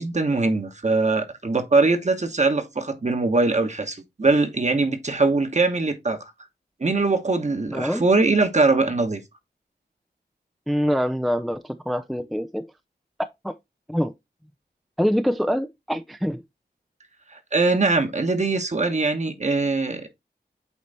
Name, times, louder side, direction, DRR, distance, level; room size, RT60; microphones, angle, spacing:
voice 1, 0.0-6.2 6.8-9.2 17.3-20.1, right 3 dB, 40° right, 1.2 m, -22 dB
voice 2, 7.7-8.1 10.7-12.7 13.2-13.5 13.9-14.1 15.0-16.4, equal, ahead, 0.4 m, -25 dB
8.4 x 3.2 x 4.1 m
wide cardioid pair, 95°, 18 cm